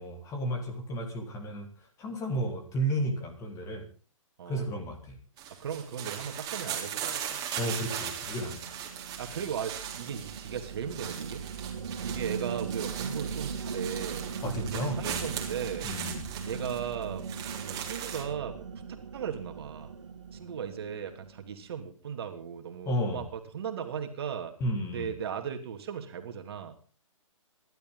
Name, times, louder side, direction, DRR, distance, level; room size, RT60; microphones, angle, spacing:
voice 1, 0.0-1.7 2.0-3.9 4.5-5.2 7.6-8.7 14.4-15.3 15.8-16.3 22.9-23.3 24.6-25.1, right 1 dB, 20° left, 5 dB, 3.5 m, -33 dB
sound 1, 5.4-18.2, right 8 dB, 20° right, 3.6 m, -39 dB
voice 2, 5.6-7.4 8.4-8.5 9.2-11.4 12.0-14.3 14.6-15.9 16.5-17.3 17.6-19.9 20.3-24.5 24.9-26.7, right 8 dB, 50° right, 6 dB, 2.7 m, -37 dB
sound 2, 7.2-21.7, right 6 dB, 65° right, 2.0 m, -39 dB
27.0 x 12.0 x 4.0 m, 0.37 s
figure-of-eight pair, 125°, 17 cm